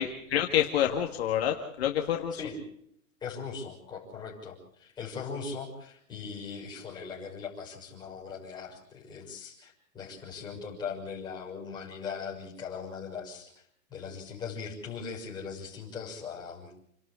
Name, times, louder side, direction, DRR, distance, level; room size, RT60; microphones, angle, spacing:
voice 1, 0.0-2.4, left 10 dB, 45° left, 3 dB, 2.0 m, -28 dB
voice 2, 3.2-16.7, left 5 dB, 10° left, -3 dB, 6.2 m, -40 dB
29.0 x 12.5 x 8.2 m, 0.71 s
hypercardioid pair, 165°, 42 cm